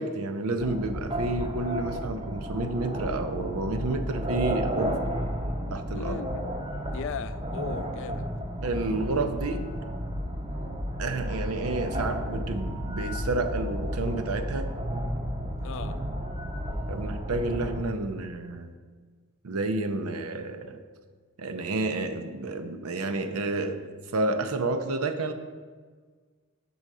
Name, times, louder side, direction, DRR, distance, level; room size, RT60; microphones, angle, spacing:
voice 1, 0.0-5.0 5.7-6.2 8.6-9.7 11.0-14.7 16.9-18.7 19.4-20.8 21.4-25.3, right 2 dB, 90° right, 0.6 m, -30 dB
sound 1, 0.6-17.8, equal, 25° right, 0.6 m, -32 dB
voice 2, 5.9-8.3 15.6-16.0, left 6 dB, 60° left, 0.3 m, -38 dB
6.5 x 4.0 x 6.1 m
head